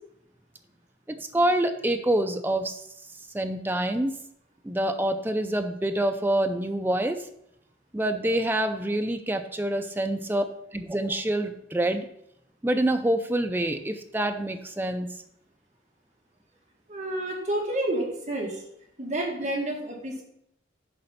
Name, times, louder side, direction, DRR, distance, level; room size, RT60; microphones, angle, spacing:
voice 1, 1.1-2.8 3.3-4.1 4.6-7.2 7.9-10.4 10.7-12.1 12.6-15.1, right 1 dB, 10° right, 6 dB, 0.4 m, -26 dB
voice 2, 16.9-18.6 19.0-20.2, right 1 dB, 35° right, -3 dB, 1.7 m, -29 dB
6.8 x 4.2 x 5.8 m, 0.76 s
head